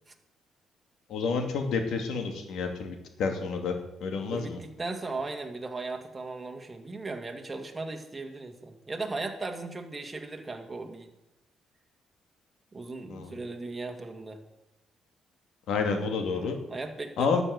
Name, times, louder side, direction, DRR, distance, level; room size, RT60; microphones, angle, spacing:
voice 1, 1.1-3.7 4.0-4.6 13.1-13.3 15.7-16.6 17.2-17.4, left 5 dB, 75° left, 5 dB, 2.4 m, -29 dB
voice 2, 4.3-11.1 12.7-14.4 16.3-17.4, right 3 dB, 20° right, 3 dB, 2.2 m, -37 dB
12.0 x 6.9 x 9.4 m, 0.92 s
cardioid pair, 90°, 0 cm